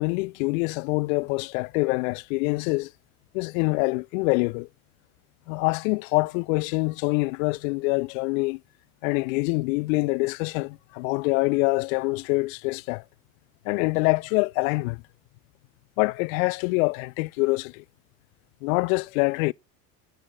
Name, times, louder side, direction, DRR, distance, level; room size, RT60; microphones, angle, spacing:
voice 1, 0.0-2.9 3.3-4.7 5.5-8.6 9.0-13.0 13.7-15.0 16.0-17.8 18.6-19.5, left 27 dB, 65° left, 0.5 m, -25 dB
19.0 x 9.0 x 2.2 m
hypercardioid pair, 75°, 44 cm